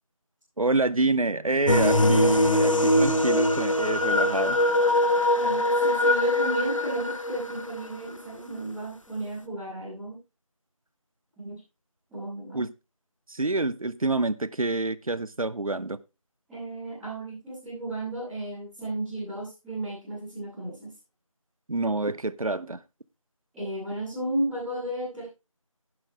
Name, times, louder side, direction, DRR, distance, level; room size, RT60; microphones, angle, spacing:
voice 1, 0.6-4.6 12.5-12.7 13.3-16.0 21.7-22.8, right 2 dB, 80° right, 0.8 m, -27 dB
sound 1, 1.7-7.8, left 1 dB, 65° left, 1.5 m, -22 dB
voice 2, 5.4-10.1 11.4-11.6 12.1-12.6 16.5-20.9 23.5-25.2, right 1 dB, ahead, 1.7 m, -34 dB
11.5 x 10.5 x 3.4 m
figure-of-eight pair, 175°, 18 cm